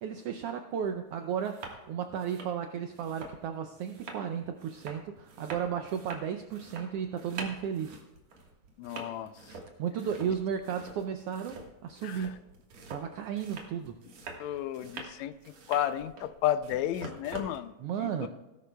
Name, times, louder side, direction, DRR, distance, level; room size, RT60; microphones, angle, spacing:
voice 1, 0.0-8.0 9.8-12.4 12.9-14.0 17.8-18.3, right 8 dB, 80° right, 6 dB, 1.3 m, -34 dB
sound 1, 0.8-0.9 1.3-1.8 2.1-17.6, right 3 dB, 65° right, 2.7 m, -46 dB
voice 2, 8.8-9.3 12.0-12.3 14.4-15.3 15.7-17.7 18.0-18.3, left 11 dB, 80° left, 12 dB, 1.8 m, -32 dB
17.5 x 11.5 x 2.3 m, 1.1 s
omnidirectional pair, 3.4 m